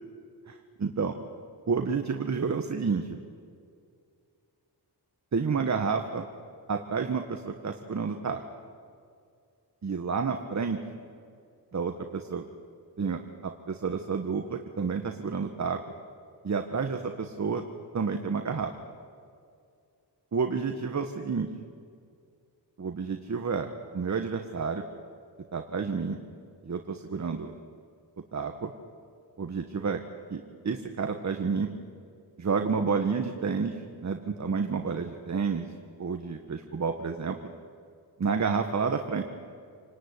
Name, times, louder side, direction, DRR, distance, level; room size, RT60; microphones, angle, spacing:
voice 1, 0.8-1.1 1.7-3.2 5.3-6.3 6.7-8.4 9.8-10.8 11.7-12.5 13.0-15.8 16.4-17.6 17.9-18.7 20.3-21.5 22.8-24.8 25.5-26.2 26.6-27.5 28.3-28.7 29.4-30.0 30.3-31.7 32.4-35.7 36.0-37.4 38.2-39.2, right 5 dB, 40° right, 5 dB, 1.6 m, -30 dB
28.5 x 19.5 x 9.9 m, 2.3 s
cardioid pair, 95°, 41 cm